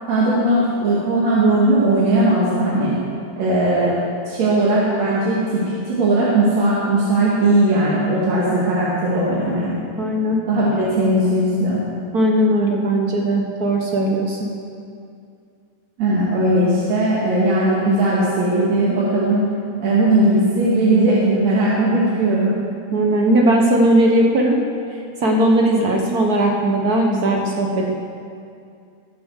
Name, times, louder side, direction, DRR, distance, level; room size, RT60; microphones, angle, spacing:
voice 1, 0.1-2.9 3.4-3.9 4.3-9.8 10.5-11.8 16.0-19.4 19.8-22.5, right 1 dB, 65° right, -7 dB, 3.3 m, -18 dB
voice 2, 10.0-10.4 12.1-14.5 22.9-24.6 25.2-27.9, right 1 dB, 85° right, 0 dB, 0.8 m, -18 dB
21.0 x 7.3 x 6.5 m, 2.4 s
omnidirectional pair, 3.3 m